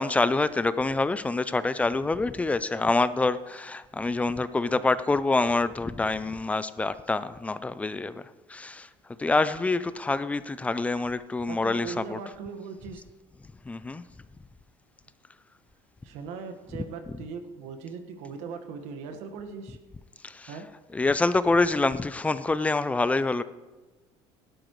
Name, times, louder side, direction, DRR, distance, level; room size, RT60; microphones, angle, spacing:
voice 1, 0.0-8.2 8.5-8.9 9.2-12.2 13.7-14.0 20.2-20.5 20.9-23.4, left 3 dB, 10° left, 0.4 m, -26 dB
voice 2, 11.5-13.0 16.0-19.8 20.5-20.7, right 5 dB, 75° right, 1.5 m, -39 dB
17.0 x 11.5 x 3.1 m
cardioid pair, 140°, 12 cm